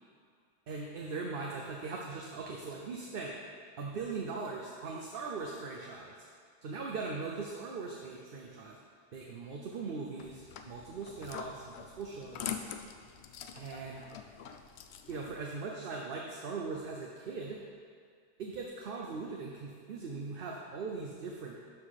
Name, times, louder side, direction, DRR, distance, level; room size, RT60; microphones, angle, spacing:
voice 1, 0.7-3.3 3.8-6.1 6.6-8.8 9.1-12.6 13.6-14.1 15.1-17.6 18.4-21.6, right 4 dB, 55° right, -1 dB, 0.9 m, -40 dB
sound 1, 10.2-15.4, left 8 dB, 75° left, 0.8 m, -44 dB
12.0 x 4.9 x 4.1 m, 2.2 s
omnidirectional pair, 1.2 m